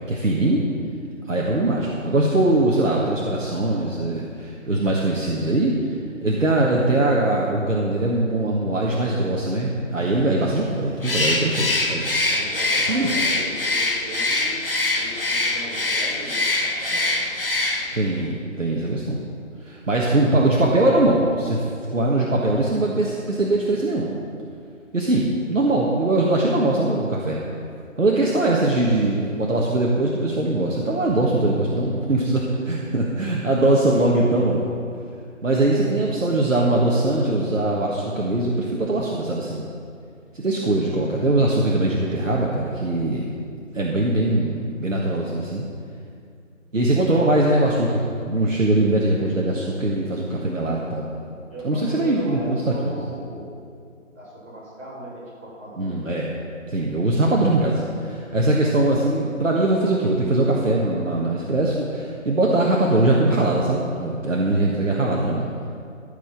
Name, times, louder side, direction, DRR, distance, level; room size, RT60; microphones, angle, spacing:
voice 1, 0.1-0.6 1.3-5.7 6.2-12.1 12.9-13.1 17.9-19.2 19.6-21.7 21.9-24.1 24.9-27.4 28.0-34.7 35.4-39.6 40.4-43.2 43.7-45.7 46.7-51.1 51.6-53.0 55.8-56.3 56.7-65.5, right 2 dB, 70° right, -3 dB, 1.5 m, -21 dB
voice 2, 2.4-2.8 12.2-14.6 14.9-17.4 35.5-36.0 51.3-53.6 53.9-56.0, right 1 dB, 10° right, -13 dB, 1.9 m, -38 dB
Bird, 11.0-18.1, left 2 dB, 45° left, 0.9 m, -23 dB
13.5 x 5.1 x 7.3 m, 2.4 s
figure-of-eight pair, 170°, 40 cm